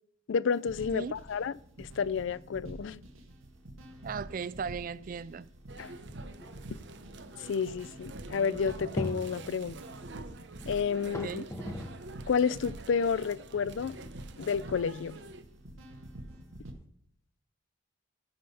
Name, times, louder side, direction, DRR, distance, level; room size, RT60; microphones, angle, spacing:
voice 1, 0.3-3.0 5.8-5.9 7.4-9.8 10.7-11.5 12.3-14.0 14.4-15.2, left 6 dB, 65° left, 0.4 m, -30 dB
sound 1, 0.5-16.7, right 1 dB, 85° right, 1.9 m, -48 dB
sound 2, 3.9-4.4 4.7-4.8 5.5-5.6 6.1-12.2 12.5-16.8, left 1 dB, 15° left, 1.2 m, -43 dB
voice 2, 4.0-5.5 11.2-11.5, right 6 dB, 40° right, 0.3 m, -37 dB
sound 3, 5.7-15.4, right 3 dB, 55° right, 0.8 m, -48 dB
15.0 x 5.5 x 5.6 m
head